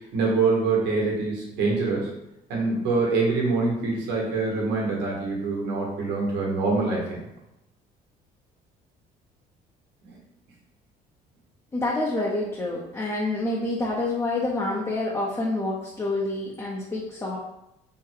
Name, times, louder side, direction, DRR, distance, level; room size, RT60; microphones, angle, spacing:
voice 1, 0.1-2.1 2.5-7.2, right 3 dB, 90° right, -2 dB, 1.3 m, -25 dB
voice 2, 11.7-17.4, left 2 dB, 15° left, -3 dB, 0.6 m, -27 dB
3.8 x 2.2 x 4.5 m, 0.88 s
cardioid pair, 110°, 17 cm